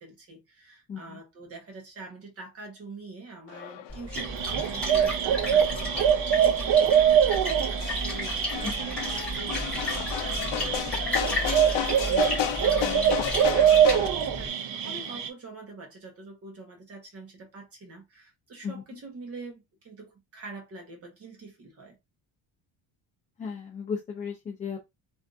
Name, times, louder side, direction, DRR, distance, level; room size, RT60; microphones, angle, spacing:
voice 1, 0.0-7.7 8.0-22.0, right 3 dB, 30° right, 1.0 m, -45 dB
sound 1, 3.5-14.1, left 11 dB, 65° left, 0.6 m, -34 dB
Splash splatter, 3.9-14.5, left 1 dB, ahead, 1.8 m, -34 dB
sound 2, 4.2-15.3, right 9 dB, 60° right, 0.6 m, -24 dB
voice 2, 23.4-24.9, left 6 dB, 20° left, 0.3 m, -35 dB
3.3 x 2.6 x 2.5 m
cardioid pair, 170°, 48 cm